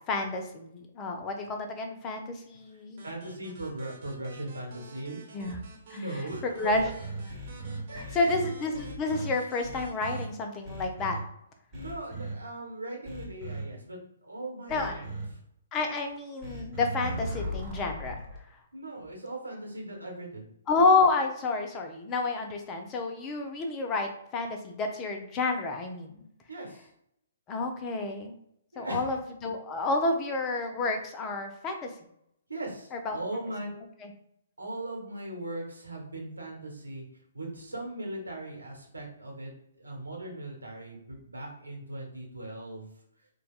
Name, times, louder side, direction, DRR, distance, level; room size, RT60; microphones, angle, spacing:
voice 1, 0.1-3.0 5.3-5.6 6.4-6.8 7.9-11.2 14.7-15.1 15.7-18.2 20.7-26.2 27.5-28.4 28.8-31.9 32.9-33.2 34.0-34.1, left 3 dB, 25° left, 4 dB, 0.5 m, -29 dB
sound 1, 3.0-10.3, right 4 dB, 50° right, 1.0 m, -51 dB
voice 2, 3.0-5.2 5.9-6.7 7.9-8.5 11.7-15.1 18.7-20.5 26.5-26.9 28.7-29.1 32.5-33.7 34.6-37.1 37.3-39.5 39.8-42.9, right 1 dB, 85° right, -1 dB, 1.2 m, -39 dB
sound 2, 6.7-9.3 9.6-10.2 10.6-11.2 11.7-12.3 13.0-13.6 14.7-15.2 16.4-18.4, right 1 dB, 25° right, 1.1 m, -37 dB
3.8 x 2.3 x 2.4 m, 0.76 s
figure-of-eight pair, 125°, 0 cm